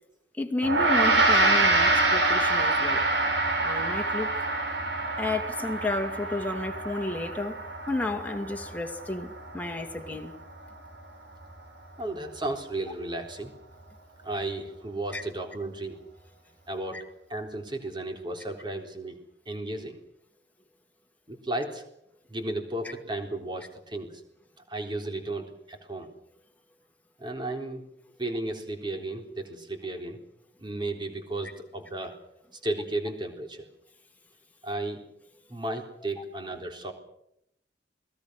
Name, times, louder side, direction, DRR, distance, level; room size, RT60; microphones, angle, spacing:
voice 1, 0.4-3.0 3.6-4.5 5.2-7.6 7.9-10.3 15.1-15.2 16.9-17.0, left 2 dB, 10° left, 2.4 m, -31 dB
Gong, 0.6-10.2, right 2 dB, 75° right, 5.3 m, -26 dB
voice 2, 12.0-13.5 14.2-16.0 16.7-19.2 19.5-20.0 21.3-21.8 22.3-24.2 24.7-26.1 27.2-27.8 28.2-30.2 30.6-32.1 32.6-33.7 34.6-35.0 35.5-36.9, right 2 dB, 25° right, 3.9 m, -34 dB
29.0 x 20.5 x 6.5 m
head